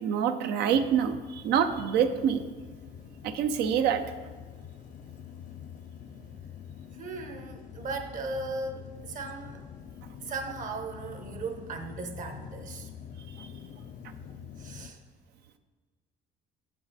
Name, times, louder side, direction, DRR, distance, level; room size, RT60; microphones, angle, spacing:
voice 1, 0.0-2.4 3.2-4.0 13.4-13.5, right 8 dB, 75° right, 9 dB, 0.5 m, -26 dB
sound 1, 0.7-14.9, left 8 dB, 50° left, 0.4 m, -45 dB
voice 2, 6.9-9.6 10.2-12.9 14.6-15.0, right 3 dB, 50° right, 6 dB, 0.9 m, -37 dB
7.2 x 5.6 x 4.0 m, 1.4 s
cardioid pair, 110°, 17 cm